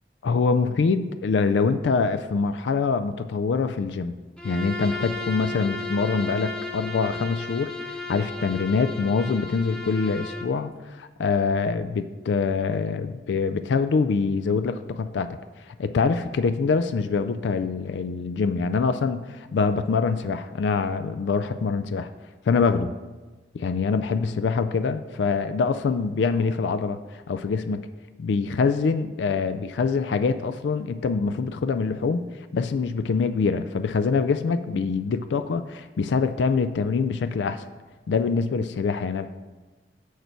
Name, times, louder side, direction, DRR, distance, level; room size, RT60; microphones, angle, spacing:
voice 1, 0.2-4.1 4.4-15.4 15.7-22.1 22.5-22.9 23.5-27.8 28.2-32.2 32.5-37.6 38.1-39.3, left 4 dB, 80° left, 11 dB, 0.4 m, -24 dB
Bowed string instrument, 4.4-10.6, left 3 dB, 5° left, 0.8 m, -34 dB
6.8 x 6.5 x 4.5 m, 1.2 s
head